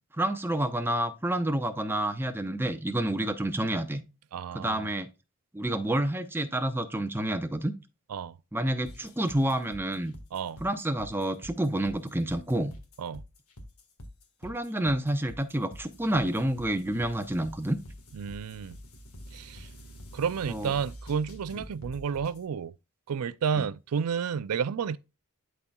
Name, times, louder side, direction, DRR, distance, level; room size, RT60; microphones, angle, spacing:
voice 1, 0.2-4.0 4.5-5.1 5.5-7.7 8.5-10.2 10.6-12.7 14.4-17.8 20.5-20.7 21.5-21.6 23.6-23.7, right 1 dB, 10° right, 0.7 m, -29 dB
voice 2, 4.3-4.9 8.1-8.4 10.3-10.6 13.0-13.2 18.1-18.8 19.3-19.7 20.1-22.7 23.1-25.0, right 6 dB, 80° right, 0.4 m, -31 dB
sound 1, 8.9-22.4, equal, 80° left, 1.6 m, -47 dB
12.0 x 4.2 x 2.3 m
head